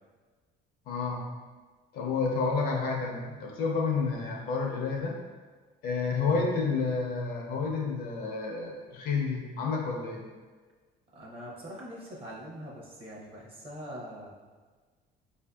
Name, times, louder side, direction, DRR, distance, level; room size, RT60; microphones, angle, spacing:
voice 1, 0.9-1.2 1.9-5.2 5.8-10.2, left 4 dB, 55° left, 0 dB, 0.6 m, -30 dB
voice 2, 11.1-14.4, equal, 30° right, -4 dB, 0.7 m, -43 dB
5.2 x 2.6 x 2.2 m, 1.4 s
cardioid pair, 170°, 18 cm